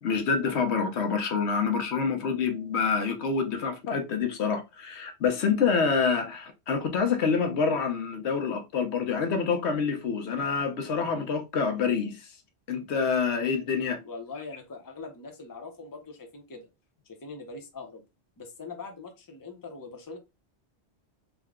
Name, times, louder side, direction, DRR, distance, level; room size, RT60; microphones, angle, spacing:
voice 1, 0.0-12.3 12.7-14.0, left 5 dB, 75° left, 1.0 m, -27 dB
voice 2, 14.0-16.7 17.0-18.0 18.4-20.2, left 3 dB, 20° left, 0.7 m, -42 dB
3.7 x 2.2 x 3.6 m
omnidirectional pair, 1.1 m